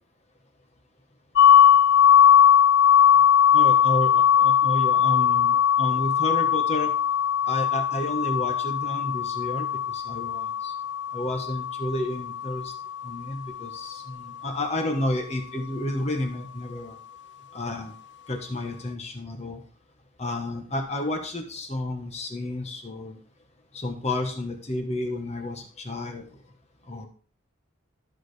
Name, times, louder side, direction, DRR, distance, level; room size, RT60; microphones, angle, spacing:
sound 1, 1.4-13.1, left 9 dB, 55° left, 0.5 m, -20 dB
voice 1, 3.5-6.9 7.5-10.7 11.1-12.7 13.0-17.0 17.5-17.9 18.3-19.6 20.2-23.1 23.7-26.2 26.9-27.1, left 1 dB, 30° left, 3 dB, 1.1 m, -31 dB
13.0 x 6.3 x 3.3 m, 0.42 s
head